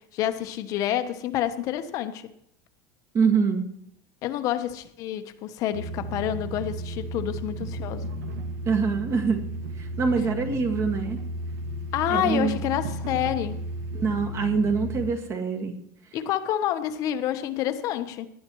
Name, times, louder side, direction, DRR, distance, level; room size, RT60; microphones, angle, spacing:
voice 1, 0.0-2.3 4.2-8.1 11.9-13.6 16.1-18.3, left 11 dB, 40° left, 1.0 m, -28 dB
voice 2, 3.1-3.6 8.7-9.5 9.8-11.2 12.1-12.6 13.9-15.8, right 5 dB, 30° right, 1.9 m, -24 dB
sound 1, 5.7-15.1, right 1 dB, 80° right, 1.9 m, -34 dB
18.5 x 11.0 x 3.1 m
supercardioid pair, 160°, 9 cm